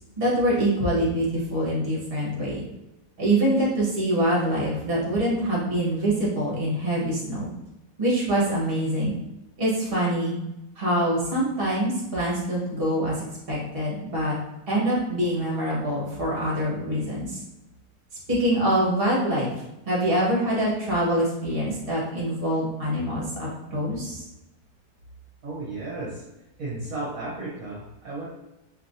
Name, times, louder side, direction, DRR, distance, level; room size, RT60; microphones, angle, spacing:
voice 1, 0.2-2.6 3.2-7.5 8.0-9.2 9.6-10.4 10.8-13.1 13.5-14.3 14.7-17.4 18.3-19.5 19.9-24.2, right 1 dB, 35° right, -5 dB, 1.5 m, -25 dB
voice 2, 25.4-26.2 26.6-28.2, right 2 dB, 60° right, -6 dB, 1.2 m, -34 dB
4.4 x 3.0 x 2.6 m, 0.94 s
omnidirectional pair, 1.7 m